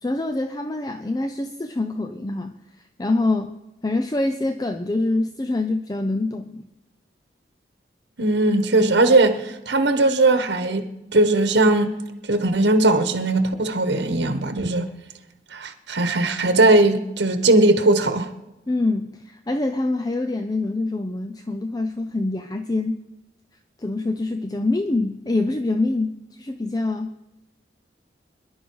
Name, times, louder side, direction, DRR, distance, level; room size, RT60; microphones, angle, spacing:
voice 1, 0.0-2.6 3.0-3.5 3.8-6.7 18.7-23.0 23.8-27.1, left 2 dB, 20° left, 0.5 m, -25 dB
voice 2, 8.2-11.9 12.3-14.9 15.5-18.3, right 2 dB, 85° right, 1.3 m, -19 dB
24.5 x 11.0 x 4.7 m
head